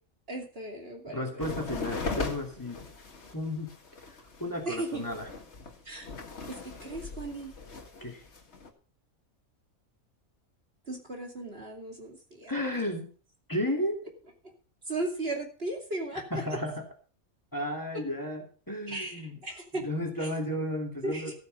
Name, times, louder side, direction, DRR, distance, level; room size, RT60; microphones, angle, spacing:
voice 1, 0.3-1.7 4.6-5.0 5.8-6.1 6.5-7.5 10.9-12.5 14.9-16.4 18.9-19.9 20.2-20.3 21.0-21.3, right 2 dB, 45° right, 2 dB, 2.8 m, -36 dB
voice 2, 1.1-2.9 3.3-3.7 4.4-5.3 8.0-8.2 12.5-13.1 13.5-14.0 16.3-16.8 17.5-19.3 19.8-21.3, left 1 dB, 15° left, 2 dB, 2.6 m, -33 dB
sound 1, 1.4-8.7, left 4 dB, 50° left, 2.0 m, -39 dB
14.0 x 9.4 x 5.3 m, 0.37 s
omnidirectional pair, 1.5 m